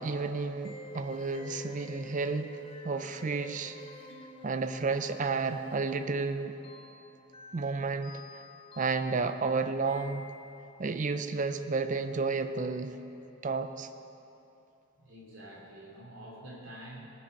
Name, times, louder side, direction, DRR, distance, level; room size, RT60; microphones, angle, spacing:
voice 1, 0.0-2.6 2.8-3.8 4.4-6.6 7.5-8.2 8.8-10.3 10.8-13.0 13.4-13.9, right 4 dB, 35° right, 9 dB, 0.5 m, -31 dB
sound 1, 0.6-10.8, left 2 dB, 25° left, 0.6 m, -50 dB
voice 2, 14.9-17.1, right 1 dB, 65° right, -3 dB, 2.7 m, -47 dB
18.5 x 7.1 x 5.2 m, 2.8 s
head